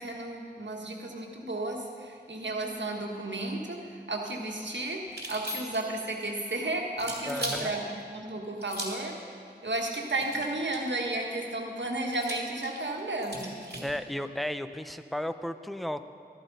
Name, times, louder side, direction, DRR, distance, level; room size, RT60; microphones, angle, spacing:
voice 1, 0.0-5.0 5.3-7.8 8.1-9.2 9.6-13.6, right 2 dB, 85° right, 0 dB, 1.4 m, -33 dB
sound 1, 5.1-6.0 7.0-7.7 8.6-9.1 10.2-11.0 12.1-13.9, right 1 dB, 65° right, 2.1 m, -38 dB
voice 2, 7.3-7.7 13.8-16.1, left 1 dB, ahead, 10 dB, 0.5 m, -34 dB
13.5 x 13.0 x 4.1 m, 2.3 s
wide cardioid pair, 45°, 18 cm